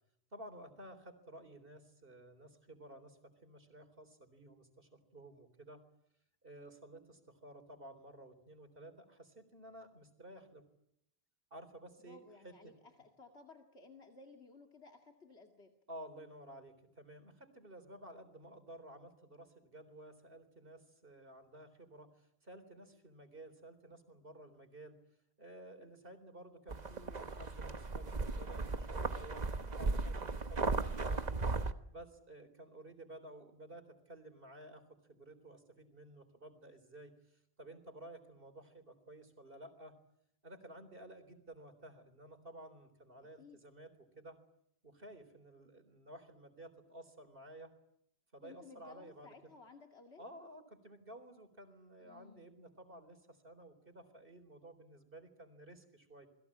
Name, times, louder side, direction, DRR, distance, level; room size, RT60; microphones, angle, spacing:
voice 1, 0.3-5.8 6.4-10.6 11.5-12.7 15.9-25.0 25.4-29.5 29.8-31.3 31.9-40.0 40.4-44.4 44.8-47.7 48.3-49.3 50.2-56.3, right 1 dB, 60° right, 8 dB, 4.1 m, -54 dB
voice 2, 12.0-15.7 43.4-43.6 48.4-50.2 52.0-52.5, left 3 dB, 90° left, 3 dB, 2.6 m, -57 dB
sound 1, 26.7-31.7, right 3 dB, 40° right, 1.3 m, -36 dB
29.0 x 21.5 x 8.6 m, 0.75 s
omnidirectional pair, 1.1 m